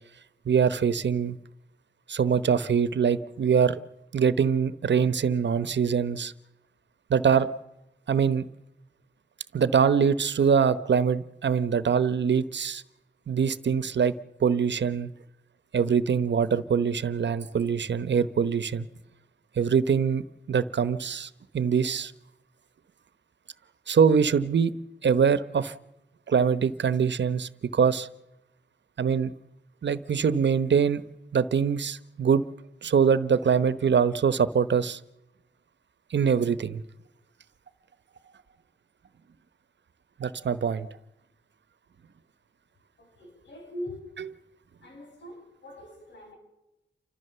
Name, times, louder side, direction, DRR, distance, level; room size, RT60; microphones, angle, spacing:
voice 1, 0.5-1.4 2.1-3.8 4.1-6.3 7.1-7.5 8.1-8.5 9.5-12.8 13.3-14.1 14.4-15.1 15.7-18.9 19.6-22.1 23.9-24.7 25.0-25.7 26.3-28.1 29.0-29.3 29.8-31.0 31.3-32.4 32.8-35.0 36.1-36.8 40.2-40.9, right 6 dB, 85° right, 1.0 m, -23 dB
voice 2, 43.0-44.3 44.8-46.4, left 1 dB, 85° left, 7.0 m, -42 dB
29.0 x 14.5 x 6.9 m
wide cardioid pair, 70°, 18 cm